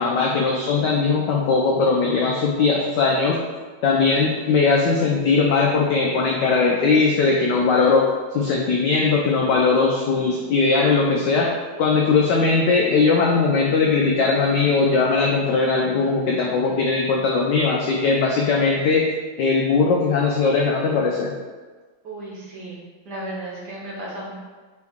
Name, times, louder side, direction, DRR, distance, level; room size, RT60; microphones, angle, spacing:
voice 1, 0.0-3.4 3.8-8.1 8.3-11.5 11.8-19.1 19.4-21.3, left 4 dB, 85° left, -2 dB, 0.9 m, -19 dB
voice 2, 22.0-24.3, right 1 dB, 60° right, -5 dB, 1.3 m, -34 dB
4.5 x 3.1 x 3.5 m, 1.4 s
omnidirectional pair, 2.4 m